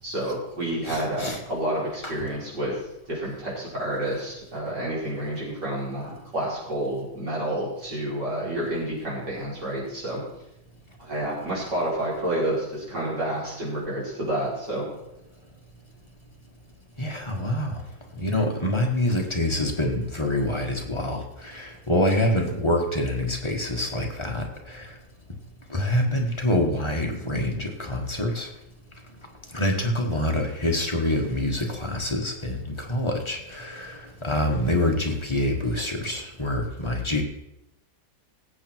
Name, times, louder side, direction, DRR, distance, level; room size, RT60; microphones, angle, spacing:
voice 1, 0.0-2.8 3.1-10.2 11.0-14.9, right 1 dB, 70° right, -6 dB, 5.5 m, -29 dB
voice 2, 0.8-1.4 2.0-2.1 17.0-17.7 18.2-24.9 25.7-28.5 29.5-37.2, left 1 dB, 15° left, 1 dB, 1.6 m, -26 dB
18.0 x 7.8 x 4.6 m, 0.87 s
omnidirectional pair, 1.9 m